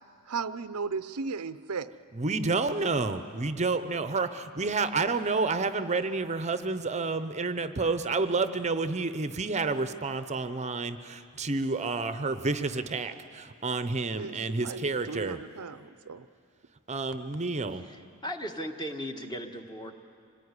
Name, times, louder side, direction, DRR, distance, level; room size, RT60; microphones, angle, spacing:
voice 1, 0.3-1.9 14.1-16.3, right 5 dB, 80° right, 13 dB, 0.7 m, -36 dB
voice 2, 2.1-15.4 16.9-17.8, right 3 dB, 30° right, 11 dB, 0.8 m, -29 dB
voice 3, 17.7-19.9, equal, 20° left, 4 dB, 1.5 m, -37 dB
25.0 x 19.0 x 9.8 m, 2.4 s
head